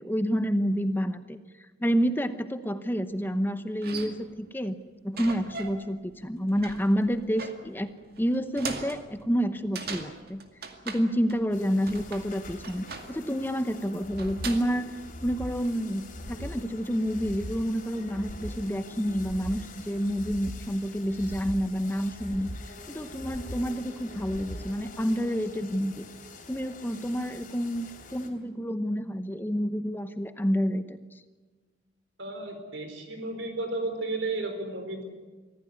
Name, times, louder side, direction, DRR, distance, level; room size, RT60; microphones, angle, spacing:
voice 1, 0.0-4.8 5.0-7.9 8.2-10.4 10.8-14.9 15.2-22.5 22.9-26.1 26.5-31.0, equal, 10° left, 10 dB, 0.8 m, -29 dB
sound 1, 3.3-3.4 3.8-4.5 5.2-5.9 6.2-11.6 11.9-13.3 14.2-14.8 15.5-16.0, right 4 dB, 55° right, 2.2 m, -41 dB
sound 2, 11.5-28.3, left 3 dB, 45° left, 3.8 m, -47 dB
sound 3, 14.0-14.6 15.0-15.6 16.0-16.6 17.0-17.6 18.0-18.6 19.0-19.6 20.0-20.6 21.1-21.6 22.1-22.7 23.1-23.7 24.1-24.7 25.1-25.2, equal, 70° left, 1.7 m, -40 dB
voice 2, 32.2-35.1, right 2 dB, 75° right, 6 dB, 4.3 m, -33 dB
24.5 x 15.5 x 9.6 m, 1.3 s
head